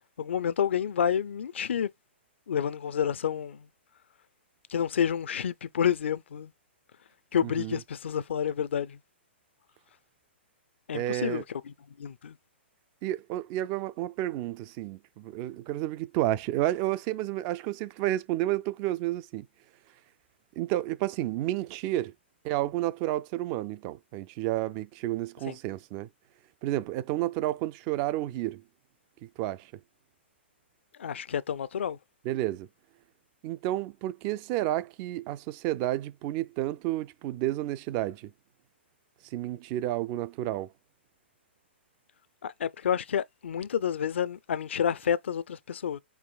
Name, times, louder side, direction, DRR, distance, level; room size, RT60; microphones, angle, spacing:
voice 1, 0.2-1.9 2.5-3.7 4.7-6.5 7.3-9.0 10.9-12.4 25.5-25.6 31.0-32.0 42.4-46.0, left 8 dB, 75° left, 0.4 m, -29 dB
voice 2, 7.4-7.8 10.9-11.4 13.0-19.5 20.6-22.1 22.4-26.1 26.6-28.6 29.2-29.7 32.2-32.7 33.4-38.3 39.3-40.7, right 15 dB, 35° right, 0.4 m, -31 dB
4.8 x 4.7 x 2.2 m
hypercardioid pair, 135°, 6 cm